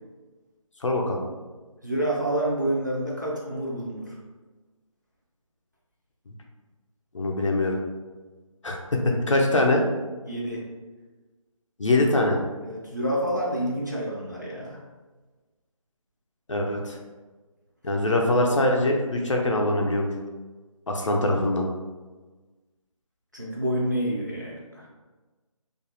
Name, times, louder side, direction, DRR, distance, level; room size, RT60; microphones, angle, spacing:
voice 1, 0.8-1.2 6.3-6.4 7.1-7.8 8.6-8.8 9.0-9.8 11.8-12.4 16.5-17.0 17.8-20.1 20.9-21.6, left 1 dB, 60° left, 1 dB, 0.5 m, -23 dB
voice 2, 1.8-4.2 10.3-10.6 12.6-14.8 23.3-24.9, right 1 dB, 35° right, -4 dB, 0.4 m, -28 dB
2.4 x 2.0 x 2.8 m, 1.3 s
figure-of-eight pair, 180°, 18 cm